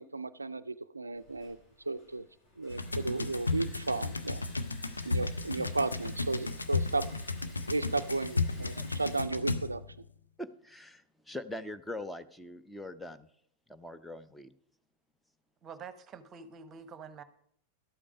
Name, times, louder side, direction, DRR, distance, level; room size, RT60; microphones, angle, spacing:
voice 1, 0.0-1.6 1.9-2.3 2.6-4.4 5.0-7.1 7.7-9.8, right 3 dB, 80° right, 17 dB, 0.3 m, -34 dB
Liquid, 1.1-9.2, left 2 dB, 40° left, 5.6 m, -55 dB
sound 1, 2.7-10.0, left 3 dB, 80° left, 0.7 m, -34 dB
voice 2, 10.4-13.3 13.7-14.5, left 1 dB, 5° left, 10 dB, 0.6 m, -42 dB
voice 3, 15.6-17.2, right 6 dB, 25° right, 13 dB, 1.0 m, -47 dB
12.5 x 8.6 x 5.2 m, 0.68 s
figure-of-eight pair, 90°, 0 cm